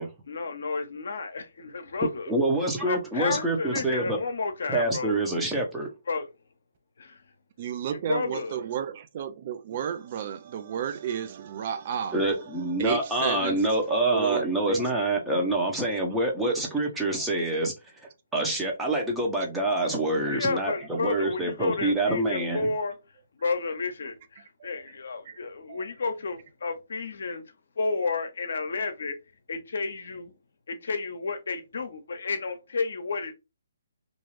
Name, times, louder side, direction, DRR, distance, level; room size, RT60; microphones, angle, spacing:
voice 1, 0.3-2.3 2.9-5.2 6.1-6.3 7.0-7.2 7.9-8.6 20.3-22.9 23.4-27.4 27.8-29.2 29.5-30.3 30.7-33.3, left 4 dB, 70° left, 0.7 m, -31 dB
voice 2, 2.3-4.2 4.7-5.9 12.1-17.7 18.3-22.7, right 2 dB, 5° right, 0.7 m, -26 dB
voice 3, 7.6-15.4 15.9-16.0 22.5-22.7 24.6-24.9 25.2-25.4 25.7-25.9, right 9 dB, 45° right, 0.3 m, -34 dB
2.5 x 2.3 x 3.1 m
hypercardioid pair, 145°, 0 cm